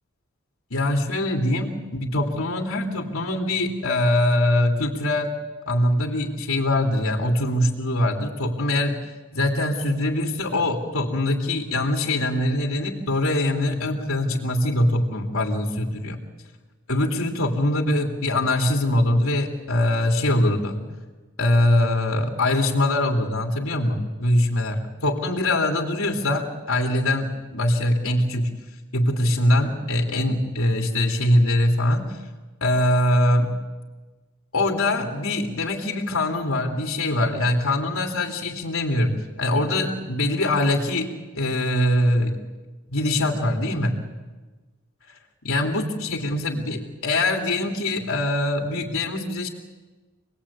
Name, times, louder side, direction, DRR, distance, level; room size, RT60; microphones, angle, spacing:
voice 1, 0.7-5.3 5.7-9.0 9.3-16.2 16.9-20.8 21.4-28.5 28.9-32.2 32.6-33.5 34.5-42.4 42.9-44.0 45.4-49.5, left 1 dB, 85° left, 1 dB, 3.0 m, -23 dB
27.0 x 20.5 x 8.6 m, 1.3 s
head